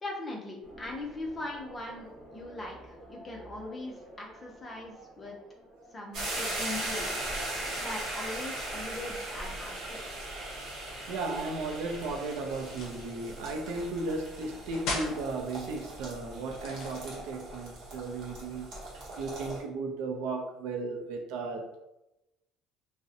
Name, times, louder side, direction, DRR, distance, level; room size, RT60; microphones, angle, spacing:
voice 1, 0.0-5.4 5.9-7.2 7.7-10.0, left 2 dB, 15° left, 0.4 m, -40 dB
sound 1, 0.6-6.9, right 1 dB, 15° right, 0.9 m, -51 dB
sound 2, 6.1-19.6, right 1 dB, 45° right, 0.8 m, -39 dB
voice 2, 11.1-18.7 19.2-21.8, right 3 dB, 80° right, 0.4 m, -35 dB
sound 3, 12.7-13.1 14.7-15.2 16.5-17.4, left 2 dB, 55° left, 0.6 m, -36 dB
2.6 x 2.0 x 2.6 m
cardioid pair, 180°, 0 cm